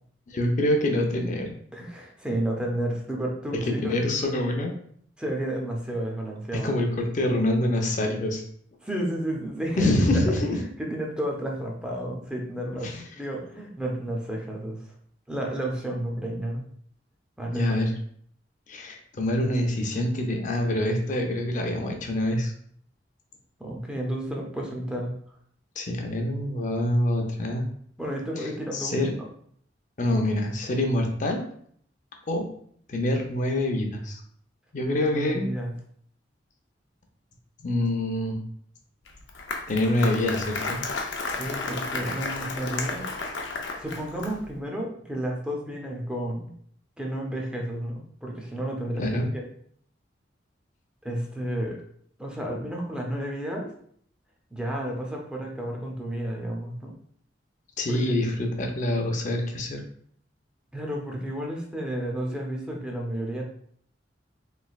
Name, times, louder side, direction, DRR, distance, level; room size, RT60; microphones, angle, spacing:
voice 1, 0.3-1.6 3.7-4.7 6.6-8.4 9.8-10.6 12.8-13.0 17.5-17.9 18.7-22.5 25.8-27.7 28.4-29.1 30.0-31.4 32.3-32.5 32.9-34.2 34.7-35.5 37.6-38.4 39.7-40.8 44.2-44.3 49.0-49.3 57.8-59.8, left 1 dB, 45° left, 3 dB, 0.6 m, -26 dB
voice 2, 1.7-3.9 5.2-6.7 8.8-10.2 10.5-14.8 15.3-16.6 17.4-17.7 23.6-25.1 28.0-29.1 35.0-35.7 41.4-43.0 43.8-46.5 47.0-49.0 49.3-49.4 51.0-51.8 52.2-53.7 54.5-56.9 57.9-58.1 60.7-63.4, right 1 dB, 5° right, -1 dB, 0.6 m, -31 dB
Applause, 39.1-44.5, left 3 dB, 90° left, 0.5 m, -32 dB
3.3 x 3.1 x 2.3 m, 0.62 s
head